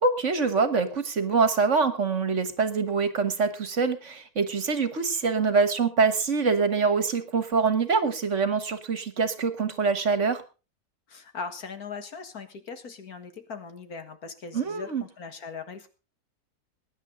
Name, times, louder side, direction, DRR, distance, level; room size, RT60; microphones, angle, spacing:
voice 1, 0.0-10.4 14.5-15.0, right 4 dB, 50° right, 11 dB, 1.6 m, -25 dB
voice 2, 11.1-15.9, left 5 dB, 70° left, 8 dB, 2.1 m, -39 dB
21.0 x 10.0 x 3.9 m, 0.33 s
omnidirectional pair, 1.6 m